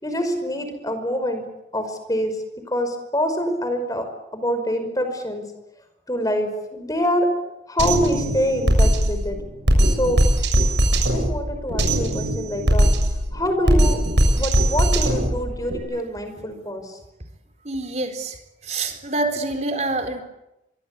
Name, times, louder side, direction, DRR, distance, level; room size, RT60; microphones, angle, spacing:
voice 1, 0.0-1.4 1.7-2.4 2.7-4.1 4.3-5.4 6.1-7.3 7.7-9.4 9.9-10.2 11.1-12.9 13.3-14.0 14.3-17.0, equal, 20° left, 7 dB, 5.4 m, -25 dB
Drum kit, 7.8-15.8, right 1 dB, 75° right, 7.3 m, -20 dB
voice 2, 17.6-18.4 18.6-20.2, right 2 dB, 40° right, 6 dB, 4.3 m, -26 dB
24.5 x 24.0 x 8.5 m, 0.92 s
head